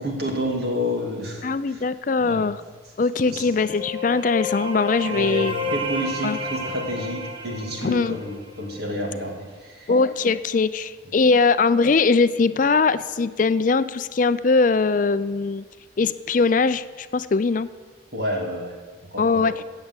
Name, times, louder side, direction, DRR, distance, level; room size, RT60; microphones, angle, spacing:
voice 1, 0.0-1.8 2.2-2.5 3.3-3.4 5.1-9.9 18.1-18.8 19.1-19.5, left 1 dB, 55° right, 1 dB, 2.9 m, -29 dB
voice 2, 1.4-2.6 3.0-5.5 6.2-6.4 7.8-8.2 9.9-15.6 16.0-17.7 19.2-19.5, left 4 dB, 40° left, 14 dB, 0.4 m, -21 dB
sound 1, 3.2-8.9, left 1 dB, 25° right, 1.1 m, -31 dB
17.0 x 7.3 x 8.1 m, 1.5 s
head